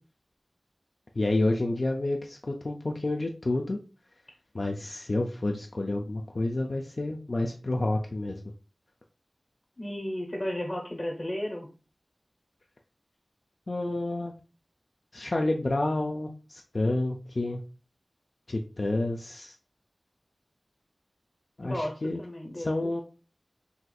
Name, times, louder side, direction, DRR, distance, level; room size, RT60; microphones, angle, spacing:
voice 1, 1.2-3.8 4.5-8.4 13.7-14.3 15.1-17.6 18.5-19.5 21.6-22.2 22.6-23.0, left 2 dB, 55° left, 2 dB, 0.3 m, -29 dB
voice 2, 9.8-11.7 21.6-22.7, left 1 dB, 40° left, -1 dB, 0.7 m, -33 dB
4.1 x 2.4 x 2.3 m, 0.35 s
wide cardioid pair, 65°, 0 cm